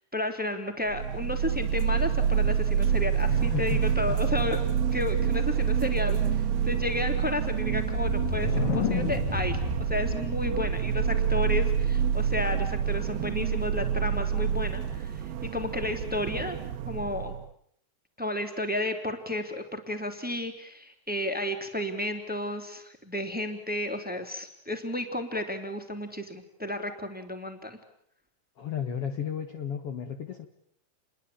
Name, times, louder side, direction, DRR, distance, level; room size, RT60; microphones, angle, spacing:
voice 1, 0.1-15.2 15.5-16.6 16.9-17.3 18.2-27.8, left 1 dB, 5° right, 6 dB, 2.9 m, -32 dB
sound 1, 0.9-17.5, right 8 dB, 85° right, 3.2 m, -27 dB
voice 2, 3.3-4.2 28.6-30.5, left 8 dB, 50° left, 8 dB, 2.0 m, -34 dB
sound 2, 7.8-11.5, left 6 dB, 65° left, 4.2 m, -32 dB
30.0 x 22.5 x 8.8 m, 0.67 s
omnidirectional pair, 4.3 m